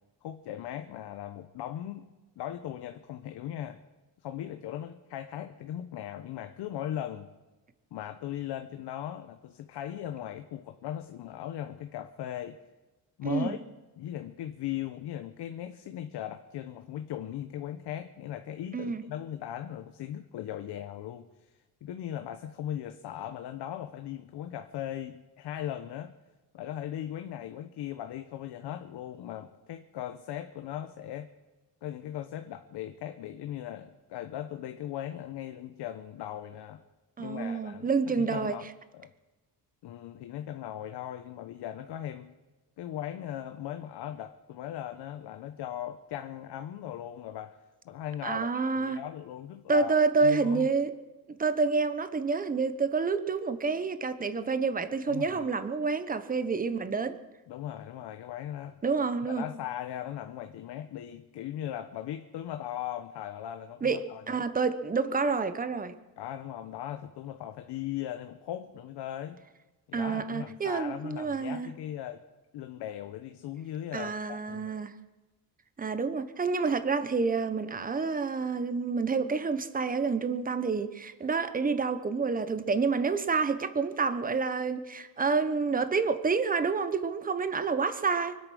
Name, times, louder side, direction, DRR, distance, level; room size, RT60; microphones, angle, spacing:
voice 1, 0.2-2.1 2.4-3.8 4.2-7.3 7.9-12.6 13.2-13.6 14.0-21.5 21.8-26.1 26.5-31.3 31.8-36.8 37.2-38.7 38.9-39.1 39.8-42.3 42.8-47.6 47.8-48.5 48.7-50.7 55.1-55.5 57.5-58.8 59.3-64.4 66.2-69.4 69.9-72.2 72.5-74.8, left 11 dB, 75° left, 8 dB, 1.0 m, -38 dB
voice 2, 13.2-13.6 18.7-19.0 37.2-38.6 48.2-49.0 49.7-50.9 51.3-57.2 58.8-59.5 63.8-64.0 64.3-65.9 69.9-71.7 73.9-74.9 75.8-88.4, right 4 dB, 20° right, 11 dB, 1.0 m, -28 dB
24.0 x 8.8 x 6.3 m, 1.2 s
cardioid pair, 130°, 41 cm